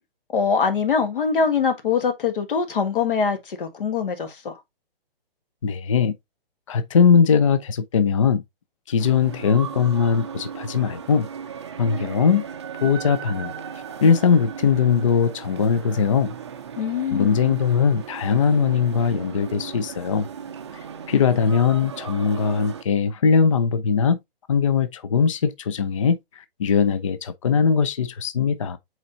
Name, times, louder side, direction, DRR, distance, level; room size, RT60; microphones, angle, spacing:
voice 1, 0.3-4.5 16.8-17.4, left 6 dB, 60° left, 1.9 m, -23 dB
voice 2, 5.6-6.1 6.7-8.4 8.9-11.3 11.8-12.4 12.8-13.5 14.0-16.3 17.1-20.3 21.1-24.2 24.5-28.8, left 6 dB, 35° left, 0.4 m, -20 dB
sound 1, 9.0-22.8, right 7 dB, 30° right, 0.5 m, -36 dB
7.9 x 4.4 x 2.7 m
hypercardioid pair, 165°, 30 cm